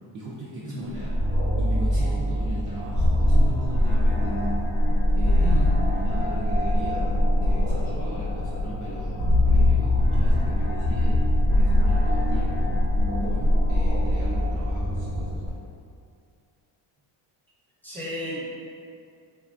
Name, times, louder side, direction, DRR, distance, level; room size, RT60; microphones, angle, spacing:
voice 1, 0.1-1.2 1.6-4.6 4.9-11.2 11.6-12.8 13.2-15.4, right 1 dB, 40° right, -6 dB, 0.4 m, -38 dB
sound 1, 0.9-15.5, left 1 dB, 80° left, 1.0 m, -22 dB
voice 2, 5.4-5.7 17.8-18.4, left 1 dB, 5° left, -7 dB, 0.7 m, -34 dB
3.3 x 2.2 x 2.4 m, 2.4 s
cardioid pair, 90°, 50 cm